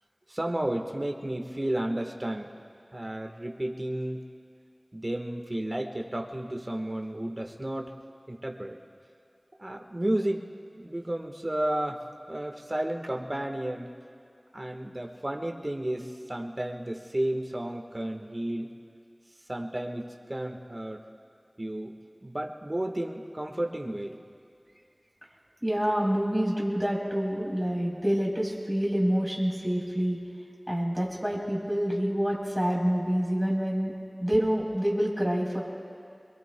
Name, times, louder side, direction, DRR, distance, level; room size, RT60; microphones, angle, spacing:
voice 1, 0.3-2.5 2.9-4.2 4.9-7.9 8.3-8.8 9.6-10.4 10.7-13.9 14.5-18.7 19.5-21.0 21.6-21.9 22.2-24.2, right 1 dB, 40° right, 2 dB, 1.4 m, -32 dB
voice 2, 25.6-30.2 30.7-33.9 34.2-35.6, equal, ahead, -3 dB, 3.8 m, -27 dB
26.5 x 22.5 x 2.3 m, 2.3 s
wide cardioid pair, 50°, 0 cm